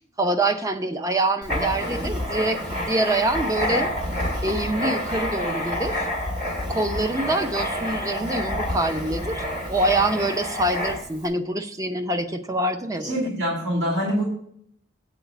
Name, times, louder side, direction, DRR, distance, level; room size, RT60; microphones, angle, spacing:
voice 1, 0.2-3.9 4.4-6.1 6.7-13.3, right 2 dB, 15° right, 6 dB, 0.5 m, -25 dB
Writing, 1.4-11.2, left 1 dB, 40° right, 2.2 m, -28 dB
voice 2, 13.0-14.2, equal, 65° right, -6 dB, 2.5 m, -24 dB
8.3 x 4.0 x 6.8 m, 0.68 s
head